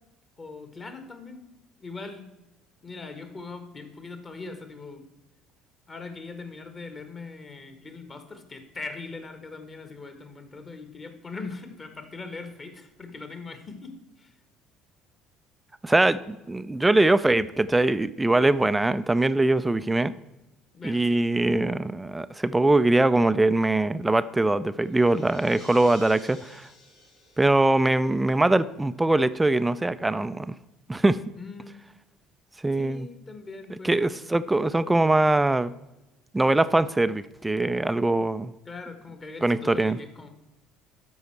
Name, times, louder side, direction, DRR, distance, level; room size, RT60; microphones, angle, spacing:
voice 1, 0.4-1.4 1.8-2.3 2.8-5.0 5.9-14.3 20.7-21.4 31.4-31.8 32.7-33.9 38.6-40.3, left 3 dB, 30° left, 8 dB, 1.5 m, -41 dB
voice 2, 15.8-20.1 20.8-26.7 27.4-30.5 30.9-31.2 32.6-33.1 33.8-35.7 36.3-38.5 39.4-40.0, right 2 dB, 10° right, 14 dB, 0.4 m, -22 dB
sound 1, 24.3-28.7, left 1 dB, 65° left, 3.1 m, -52 dB
13.0 x 5.5 x 4.5 m, 0.98 s
figure-of-eight pair, 55°, 0 cm